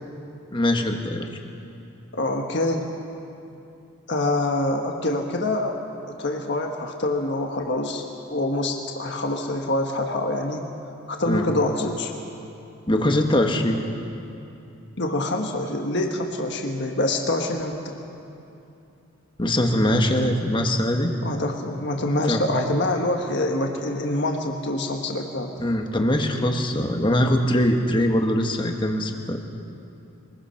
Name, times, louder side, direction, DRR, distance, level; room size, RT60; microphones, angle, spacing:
voice 1, 0.5-1.3 11.2-11.4 12.9-13.8 19.4-21.1 22.3-22.4 25.6-29.4, left 1 dB, 20° left, 4 dB, 1.4 m, -22 dB
voice 2, 2.1-2.9 4.1-5.7 6.1-10.6 11.1-12.1 15.0-18.0 21.2-25.5, left 1 dB, 50° left, 2 dB, 1.5 m, -25 dB
23.5 x 21.0 x 5.8 m, 2.7 s
head